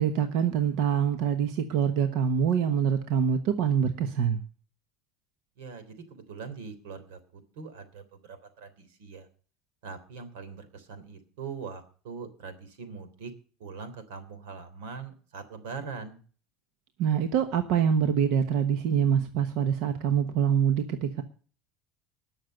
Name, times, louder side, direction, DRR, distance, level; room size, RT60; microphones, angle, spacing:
voice 1, 0.0-4.4 17.0-21.2, right 8 dB, 55° right, 8 dB, 1.1 m, -25 dB
voice 2, 5.6-7.2 7.6-9.3 9.8-13.3 13.6-16.2, right 5 dB, 85° right, 10 dB, 3.4 m, -42 dB
20.0 x 6.6 x 6.6 m, 0.42 s
cardioid pair, 180°, 0 cm